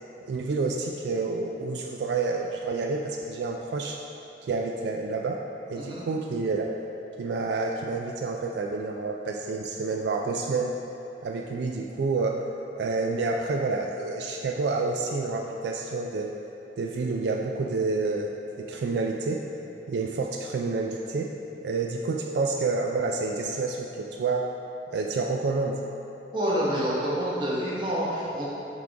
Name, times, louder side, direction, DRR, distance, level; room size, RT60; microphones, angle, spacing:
voice 1, 0.3-4.0 4.4-5.4 5.7-6.8 7.2-10.8 11.2-12.5 12.8-16.3 16.8-18.3 18.6-19.4 19.9-21.3 21.6-24.5 24.9-25.8, right 3 dB, 70° right, 1 dB, 0.3 m, -29 dB
voice 2, 26.3-28.5, equal, 25° right, -7 dB, 1.1 m, -27 dB
5.9 x 3.7 x 4.7 m, 2.9 s
head